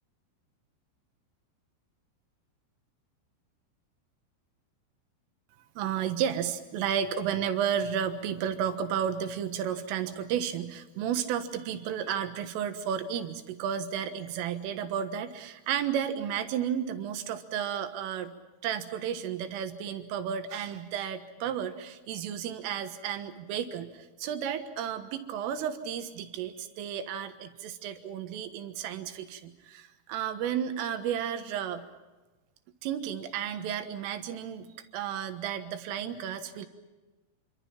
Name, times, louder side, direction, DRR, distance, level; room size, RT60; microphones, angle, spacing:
voice 1, 5.8-18.3 18.6-31.8 32.8-34.7 34.9-36.7, right 9 dB, 80° right, 8 dB, 3.9 m, -32 dB
27.0 x 25.0 x 5.9 m, 1.2 s
omnidirectional pair, 5.9 m